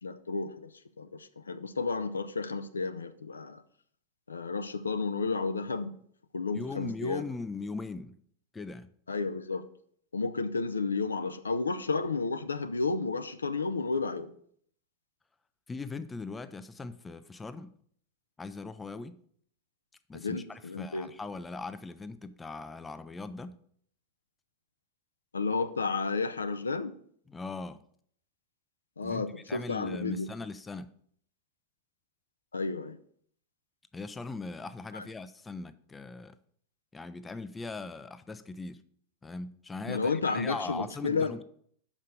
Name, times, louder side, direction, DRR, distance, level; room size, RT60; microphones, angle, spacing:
voice 1, 0.0-0.7 1.0-3.6 4.3-5.9 6.3-7.2 9.1-9.6 10.1-14.3 20.1-21.1 25.3-26.9 29.0-30.3 32.5-33.0 34.9-35.1 39.9-41.3, left 4 dB, 75° left, 0.6 m, -32 dB
voice 2, 6.5-8.2 8.5-8.9 15.7-17.7 18.4-19.2 20.1-23.6 27.3-27.8 29.0-30.9 33.9-36.4 36.9-38.8 39.2-41.4, left 3 dB, 15° left, 0.5 m, -40 dB
6.4 x 5.2 x 6.9 m
figure-of-eight pair, 90°, 0 cm